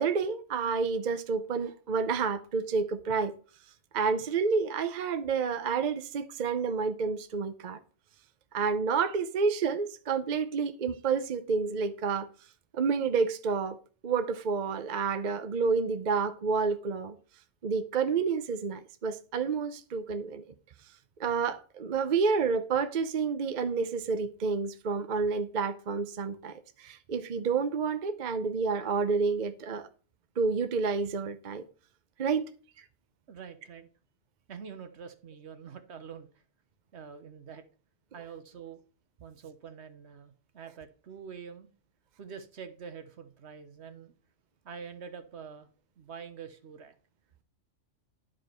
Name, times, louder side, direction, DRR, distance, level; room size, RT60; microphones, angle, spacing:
voice 1, 0.0-3.3 3.9-7.8 8.5-12.3 12.7-13.8 14.0-17.2 17.6-20.4 21.2-29.9 30.4-31.6 32.2-32.5 32.8-32.9, right 5 dB, 45° right, 0.7 m, -29 dB
voice 2, 33.3-33.9 34.5-36.3 36.9-37.6 38.1-38.8 39.2-41.7 42.2-44.1 44.6-45.7 46.0-46.9, right 6 dB, 65° right, 1.2 m, -45 dB
11.0 x 5.1 x 4.4 m
omnidirectional pair, 1.3 m